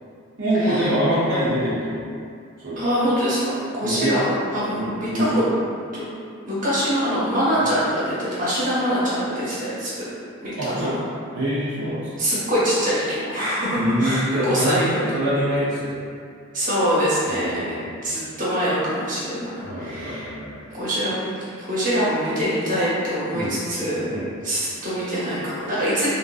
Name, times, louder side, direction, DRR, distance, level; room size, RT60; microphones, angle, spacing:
voice 1, 0.4-2.1 2.6-2.9 3.8-4.1 4.7-5.5 7.6-7.7 10.6-10.9 11.3-12.1 13.8-16.0 17.2-17.8 19.6-20.6 23.3-23.6 24.1-24.3, equal, 70° right, -10 dB, 0.6 m, -24 dB
voice 2, 2.8-5.4 5.9-6.1 6.5-10.1 10.4-11.0 12.2-15.1 16.5-17.8 18.0-20.3 20.7-21.3 21.6-24.2 24.4-26.1, equal, 40° right, -10 dB, 0.9 m, -24 dB
3.6 x 2.6 x 2.3 m, 2.3 s
head